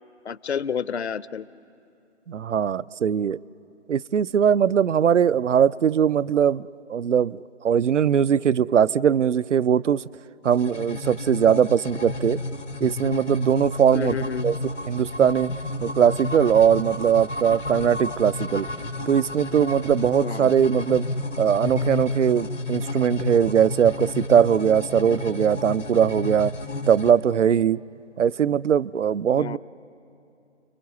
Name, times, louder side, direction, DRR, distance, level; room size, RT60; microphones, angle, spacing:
voice 1, 0.3-1.4 13.9-14.5 20.2-20.5 29.3-29.6, left 7 dB, 65° left, 0.6 m, -30 dB
voice 2, 2.3-3.4 3.9-10.0 10.4-12.4 12.8-14.6 14.9-15.5 15.8-18.7 19.1-21.1 21.4-26.5 26.9-27.8 28.2-29.6, right 8 dB, 80° right, 0.5 m, -20 dB
sound 1, 10.4-27.1, left 2 dB, 90° left, 1.8 m, -31 dB
29.5 x 19.0 x 8.3 m
figure-of-eight pair, 155°, 36 cm